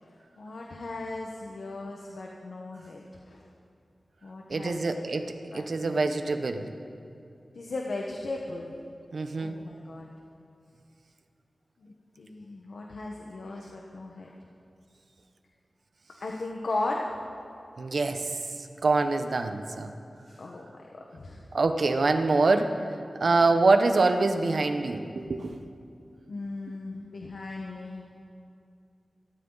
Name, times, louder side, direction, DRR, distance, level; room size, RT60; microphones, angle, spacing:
voice 1, 0.0-3.5 4.2-5.0 5.5-6.0 7.5-8.7 9.4-10.1 11.8-14.4 16.2-17.1 17.9-18.0 20.3-21.4 26.3-28.0, left 2 dB, 80° left, -1 dB, 1.4 m, -37 dB
voice 2, 4.5-5.3 5.5-6.7 9.1-9.6 17.8-18.3 18.8-19.9 21.5-22.7 23.2-25.5, right 3 dB, 70° right, 7 dB, 1.1 m, -25 dB
25.5 x 13.5 x 4.1 m, 2.5 s
wide cardioid pair, 90°, 0 cm